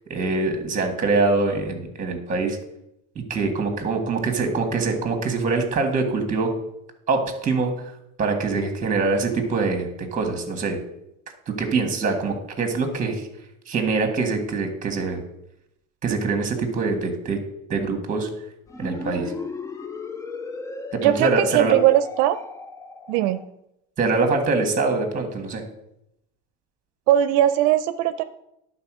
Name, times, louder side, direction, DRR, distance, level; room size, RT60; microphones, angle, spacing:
voice 1, 0.1-2.6 3.3-6.5 7.1-7.7 8.2-10.8 11.5-13.3 13.7-15.2 16.0-17.4 17.7-18.3 18.8-19.3 21.0-21.7 24.0-25.6, right 3 dB, 25° right, 5 dB, 1.7 m, -24 dB
sound 1, 18.7-23.5, left 3 dB, 10° left, 0.3 m, -36 dB
voice 2, 21.0-22.4 23.1-23.4 27.1-28.2, right 12 dB, 75° right, 11 dB, 0.6 m, -19 dB
11.0 x 4.1 x 6.1 m, 0.84 s
cardioid pair, 140°, 32 cm